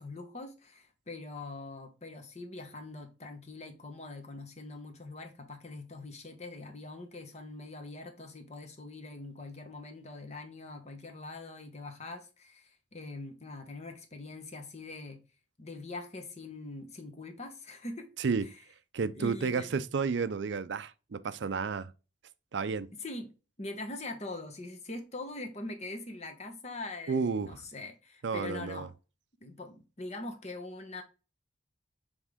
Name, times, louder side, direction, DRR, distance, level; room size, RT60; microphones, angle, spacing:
voice 1, 0.0-15.2 15.6-18.1 18.4-18.5 19.1-19.7 23.0-23.3 23.6-28.9 29.4-31.0, left 2 dB, 35° left, 1.1 m, -43 dB
voice 2, 18.9-21.9 22.5-22.9 27.1-27.6 28.2-28.9, right 5 dB, 65° right, 0.4 m, -31 dB
7.3 x 3.6 x 3.5 m
head